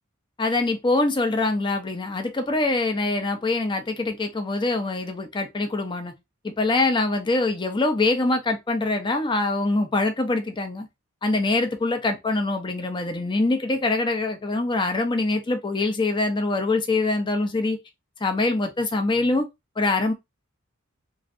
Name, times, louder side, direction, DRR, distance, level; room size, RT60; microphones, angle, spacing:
voice 1, 0.4-6.1 6.4-10.9 11.2-17.8 18.2-19.5 19.8-20.1, left 2 dB, 25° left, 0.5 m, -24 dB
3.1 x 2.5 x 2.4 m
head